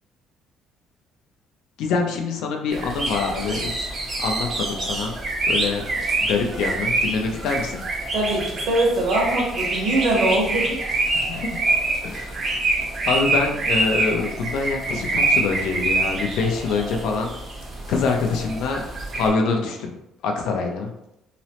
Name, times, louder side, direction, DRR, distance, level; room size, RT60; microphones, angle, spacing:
voice 1, 1.8-3.9 4.2-5.1 5.5-5.8 6.2-7.8 11.1-11.6 12.0-12.4 13.0-17.3 17.9-18.8 19.2-19.9 20.2-20.9, left 4 dB, 75° left, 3 dB, 0.5 m, -25 dB
sound 1, 2.7-19.3, right 2 dB, 30° right, 0.6 m, -26 dB
voice 2, 8.1-10.8, right 1 dB, 70° right, -2 dB, 1.0 m, -22 dB
2.9 x 2.0 x 2.8 m, 0.85 s
cardioid pair, 160°, 0 cm